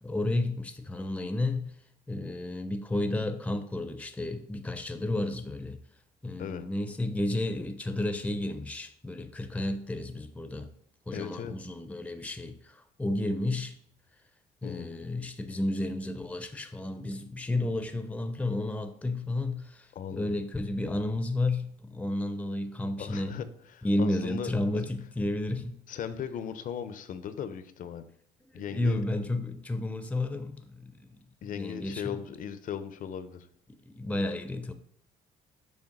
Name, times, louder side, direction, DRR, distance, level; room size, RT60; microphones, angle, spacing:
voice 1, 0.0-1.7 2.1-5.8 6.2-10.7 11.1-13.7 14.6-23.4 23.8-25.8 28.5-31.2 31.4-32.2 33.9-34.7, left 2 dB, 10° left, 0.6 m, -32 dB
voice 2, 11.1-11.6 14.6-15.1 19.9-20.4 23.0-24.8 25.9-28.0 28.5-29.0 31.4-33.5, left 8 dB, 50° left, 0.7 m, -38 dB
6.5 x 3.4 x 5.9 m
cardioid pair, 110°, 17 cm